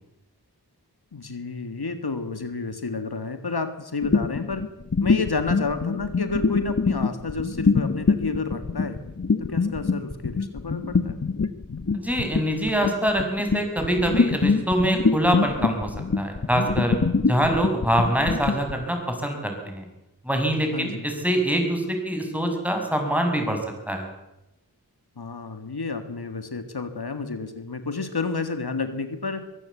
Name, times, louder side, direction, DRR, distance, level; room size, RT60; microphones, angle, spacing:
voice 1, 1.1-4.6 5.0-9.0 9.4-11.2 20.7-21.1 25.2-29.4, left 4 dB, 75° left, 8 dB, 1.8 m, -30 dB
sound 1, 4.0-18.8, left 4 dB, 45° left, 1.1 m, -24 dB
voice 2, 11.9-17.0 17.3-19.8 20.2-23.6 23.9-24.1, right 1 dB, 5° right, 3 dB, 6.1 m, -24 dB
23.5 x 15.0 x 8.3 m, 0.94 s
wide cardioid pair, 45°, 38 cm